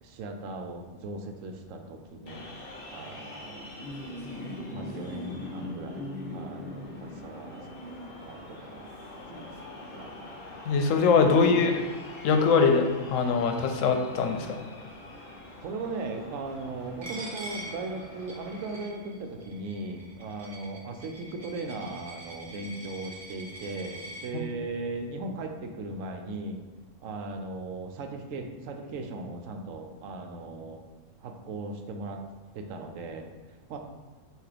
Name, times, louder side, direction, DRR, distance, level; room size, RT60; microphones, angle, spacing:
voice 1, 0.0-2.5 2.9-3.7 4.7-10.2 15.6-26.6 27.0-30.8 31.2-32.2 32.5-33.3 33.7-33.8, right 3 dB, 80° right, 4 dB, 0.9 m, -38 dB
sound 1, 2.3-18.8, left 1 dB, 50° left, 0.9 m, -42 dB
voice 2, 10.7-11.8 12.2-14.6, left 5 dB, 80° left, 5 dB, 1.0 m, -22 dB
Coin (dropping), 17.0-24.3, right 1 dB, 40° right, 0.6 m, -44 dB
5.7 x 2.6 x 3.4 m, 1.3 s
omnidirectional pair, 1.3 m